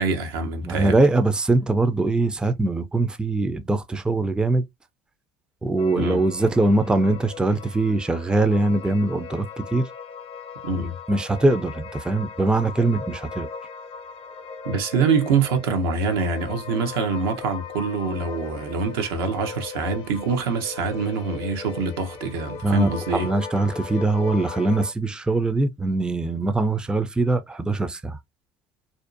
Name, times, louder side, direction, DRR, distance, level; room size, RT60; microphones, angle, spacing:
voice 1, 0.0-1.0 6.0-6.2 10.6-11.0 14.6-23.3, right 5 dB, 85° right, 0.7 m, -25 dB
voice 2, 0.6-4.6 5.6-9.9 11.1-13.5 22.6-28.2, right 2 dB, 5° right, 0.4 m, -22 dB
sound 1, 5.8-24.9, left 5 dB, 50° left, 0.5 m, -38 dB
2.6 x 2.1 x 2.5 m
hypercardioid pair, 80°, 12 cm